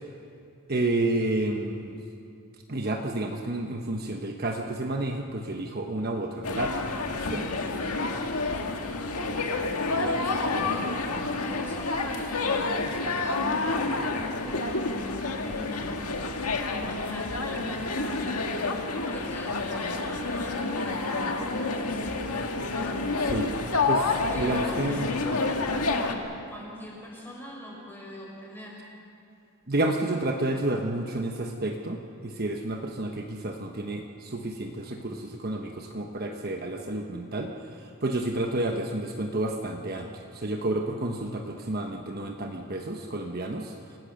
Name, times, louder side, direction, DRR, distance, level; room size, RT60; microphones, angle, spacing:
voice 1, 0.7-2.0 2.7-6.8 7.1-7.5 10.0-10.2 10.7-11.0 23.3-23.6 23.9-25.2 29.7-37.5 37.8-40.1 40.3-43.7, right 2 dB, 45° right, 2 dB, 1.2 m, -30 dB
sound 1, 6.4-26.1, left 3 dB, 85° left, 1.7 m, -29 dB
voice 2, 8.5-8.9 10.0-16.1 16.7-18.3 18.9-23.1 24.3-28.8, equal, 10° left, -3 dB, 5.7 m, -41 dB
28.0 x 17.5 x 6.6 m, 2.6 s
head